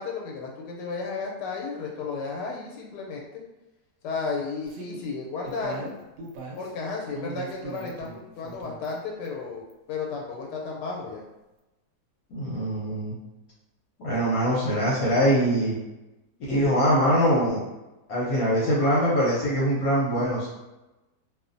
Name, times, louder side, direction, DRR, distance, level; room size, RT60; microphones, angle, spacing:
voice 1, 0.0-3.4 4.0-5.9 6.6-11.2, left 4 dB, 90° left, -1 dB, 1.2 m, -33 dB
sound 1, 4.6-5.0 5.4-6.7 7.1-8.2 8.4-9.0 9.2-9.3 9.7-9.8, right 2 dB, 85° right, 1.2 m, -39 dB
voice 2, 12.3-13.1 14.0-15.8 16.5-17.6 18.1-20.5, equal, 65° left, -6 dB, 1.0 m, -23 dB
2.6 x 2.5 x 2.5 m, 1.0 s
omnidirectional pair, 1.8 m